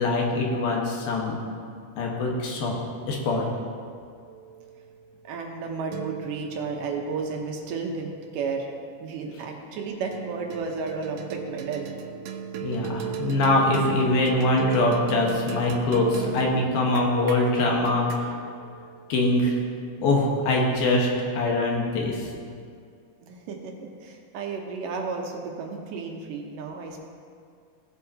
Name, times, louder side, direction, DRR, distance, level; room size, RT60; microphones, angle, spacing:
voice 1, 0.0-1.4 2.0-2.8 3.0-3.4 12.6-18.4 19.1-19.6 20.0-21.1 21.4-22.3, left 2 dB, 85° left, -1 dB, 3.2 m, -23 dB
sound 1, 4.3-8.9 10.1-20.6, right 8 dB, 90° right, 2.4 m, -38 dB
voice 2, 5.2-8.7 9.0-11.9 23.2-27.0, right 4 dB, 75° right, 1 dB, 2.5 m, -33 dB
17.0 x 8.3 x 2.8 m, 2.2 s
omnidirectional pair, 4.1 m